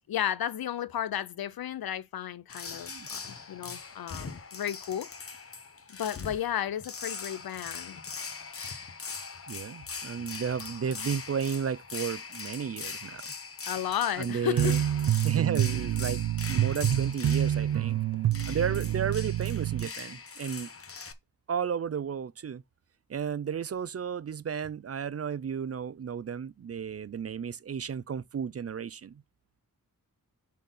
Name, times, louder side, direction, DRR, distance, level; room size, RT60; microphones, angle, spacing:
voice 1, 0.1-5.1 5.9-8.0 13.6-14.7, left 10 dB, 85° left, 0.7 m, -33 dB
sound 1, 2.5-21.1, left 5 dB, 40° left, 0.9 m, -41 dB
voice 2, 9.5-13.2 14.2-14.8 15.2-18.0 18.5-20.7 21.5-22.6 23.1-29.2, right 7 dB, 45° right, 0.5 m, -33 dB
sound 2, 14.6-19.9, right 12 dB, 85° right, 0.6 m, -27 dB
7.5 x 4.3 x 5.4 m
wide cardioid pair, 125°, 35 cm